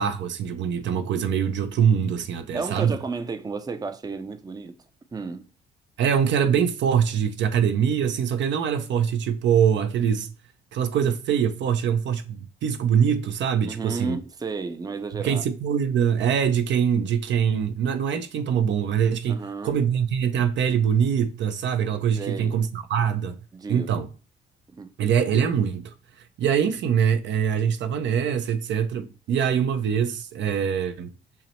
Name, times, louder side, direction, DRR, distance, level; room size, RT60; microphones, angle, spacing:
voice 1, 0.0-2.9 6.0-10.3 10.7-14.2 15.2-19.4 19.6-23.4 23.7-24.1 25.0-25.9 26.4-31.1, right 8 dB, 65° right, 0.5 m, -23 dB
voice 2, 2.5-4.7 5.1-5.5 13.6-15.4 19.3-19.7 22.2-22.6 23.5-24.0 24.7-24.9, right 4 dB, 20° right, 0.5 m, -32 dB
5.5 x 2.0 x 3.0 m
cardioid pair, 90°, 20 cm